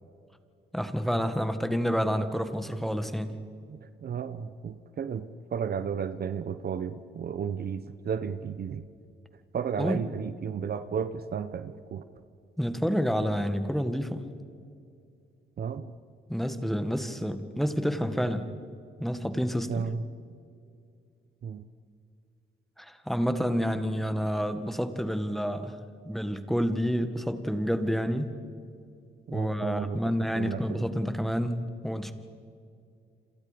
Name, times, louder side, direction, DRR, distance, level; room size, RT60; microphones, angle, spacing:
voice 1, 0.7-3.3 9.8-10.0 12.6-14.2 16.3-18.4 19.0-19.9 22.8-25.7 26.1-28.3 29.3-32.1, equal, ahead, 9 dB, 1.9 m, -29 dB
voice 2, 3.7-8.9 9.5-12.0 15.6-15.9 19.7-20.0 21.4-21.6 29.3-30.0 30.3-30.8, right 7 dB, 50° right, 12 dB, 1.1 m, -33 dB
29.0 x 27.0 x 5.3 m, 2.4 s
cardioid pair, 90°, 20 cm